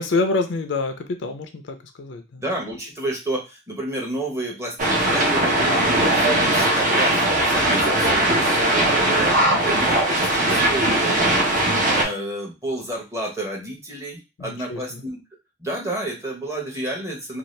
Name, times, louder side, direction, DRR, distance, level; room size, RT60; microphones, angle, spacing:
voice 1, 0.0-2.4 14.4-15.0, left 3 dB, 70° left, 7 dB, 0.5 m, -26 dB
voice 2, 2.4-11.4 11.8-15.2 15.6-17.4, right 1 dB, 15° right, -1 dB, 0.9 m, -30 dB
sound 1, 4.8-12.0, right 1 dB, 45° right, 0.8 m, -19 dB
2.7 x 2.3 x 3.1 m, 0.27 s
head